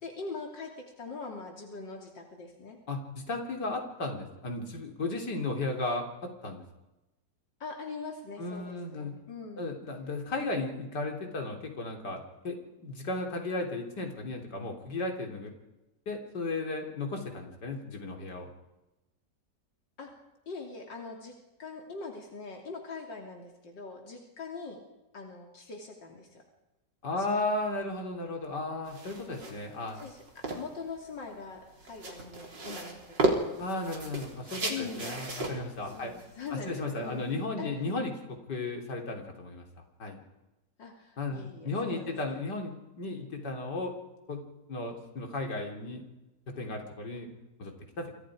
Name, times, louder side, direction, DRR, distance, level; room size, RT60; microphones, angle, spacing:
voice 1, 0.0-2.8 7.6-9.7 20.0-20.1 20.5-21.3 21.6-24.8 25.1-26.4 27.2-27.5 29.9-33.0 34.7-35.1 35.9-37.3 37.6-37.7 40.8-42.4, left 4 dB, 85° left, 1 dB, 3.7 m, -42 dB
voice 2, 2.9-6.0 6.4-6.6 8.4-9.1 9.6-12.6 12.8-15.5 16.1-18.5 27.0-30.0 33.6-36.1 36.5-39.6 40.0-40.2 41.2-43.9 44.3-44.4 44.7-46.0 46.5-47.3 47.6-48.1, left 2 dB, 70° left, 3 dB, 4.1 m, -35 dB
sound 1, 28.9-37.4, right 2 dB, 80° right, 4.4 m, -35 dB
28.5 x 27.0 x 5.1 m, 0.99 s
omnidirectional pair, 1.9 m